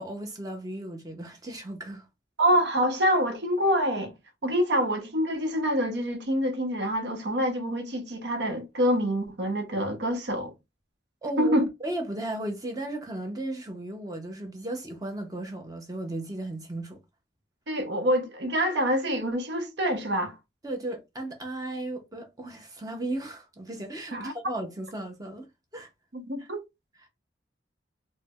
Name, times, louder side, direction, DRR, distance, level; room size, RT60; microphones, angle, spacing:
voice 1, 0.0-2.0 11.2-17.0 20.6-25.5 25.7-25.9 26.4-26.5, right 1 dB, 20° right, 0.6 m, -35 dB
voice 2, 2.4-4.1 4.4-10.5 11.4-11.6 17.7-20.4 24.1-24.3 26.1-26.6, equal, 75° right, 0.8 m, -26 dB
4.4 x 2.1 x 2.3 m
head